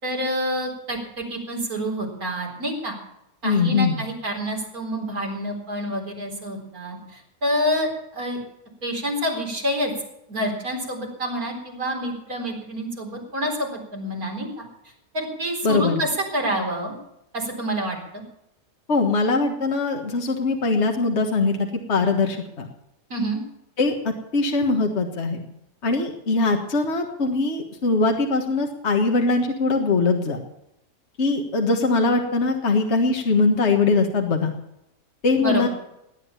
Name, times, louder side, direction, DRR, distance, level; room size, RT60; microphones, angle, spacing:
voice 1, 0.0-2.9 3.4-8.4 8.8-9.9 10.3-14.7 15.1-16.9 17.3-18.2 23.1-23.4 35.4-35.7, equal, 85° right, 0 dB, 4.6 m, -27 dB
voice 2, 3.4-4.0 15.6-16.0 18.9-22.7 23.8-25.4 25.8-30.4 31.2-34.5 35.2-35.7, left 3 dB, 50° left, 3 dB, 1.8 m, -21 dB
18.5 x 9.7 x 7.1 m, 0.84 s
omnidirectional pair, 1.5 m